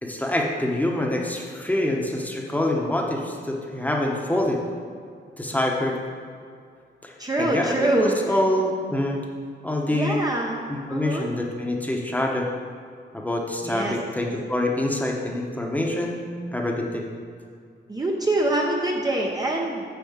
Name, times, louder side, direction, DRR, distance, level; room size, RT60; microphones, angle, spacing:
voice 1, 0.0-4.6 5.4-6.0 7.0-9.2 9.6-10.2 10.7-12.5 13.1-16.3 16.5-17.0, left 1 dB, 10° left, 0 dB, 1.0 m, -26 dB
voice 2, 7.2-8.4 9.9-10.6 10.9-11.3 13.6-14.0 17.9-19.8, right 1 dB, 20° right, -1 dB, 0.7 m, -25 dB
9.4 x 4.2 x 7.3 m, 2.2 s
wide cardioid pair, 165°, 19 cm